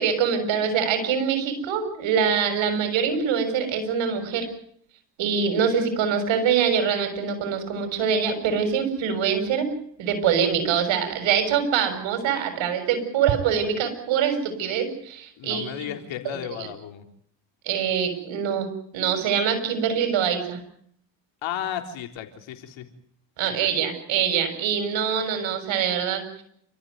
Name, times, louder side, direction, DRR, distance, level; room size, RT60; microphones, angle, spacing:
voice 1, 0.0-4.5 5.2-9.7 10.0-15.9 16.2-16.4 17.6-20.6 23.4-26.4, right 7 dB, 70° right, 8 dB, 6.7 m, -24 dB
voice 2, 15.4-17.1 21.4-22.9, left 10 dB, 70° left, 5 dB, 3.9 m, -34 dB
28.5 x 14.5 x 9.5 m, 0.67 s
hypercardioid pair, 60°, 48 cm